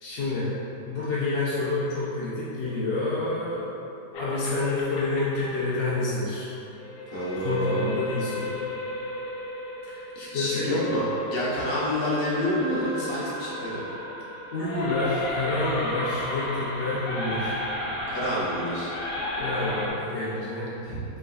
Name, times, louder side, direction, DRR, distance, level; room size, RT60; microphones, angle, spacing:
voice 1, 0.0-0.5 0.9-3.7 4.2-6.5 7.4-8.5 9.9-10.9 14.5-17.6 19.4-20.7, left 2 dB, 65° left, -9 dB, 0.6 m, -28 dB
Sms Suara Hantu, 4.1-19.9, left 1 dB, 90° left, 1.3 m, -34 dB
voice 2, 7.1-7.9 10.3-13.8 18.1-18.9 20.8-21.0, left 1 dB, 45° left, -7 dB, 0.9 m, -28 dB
5.0 x 3.5 x 2.4 m, 3.0 s
omnidirectional pair, 1.9 m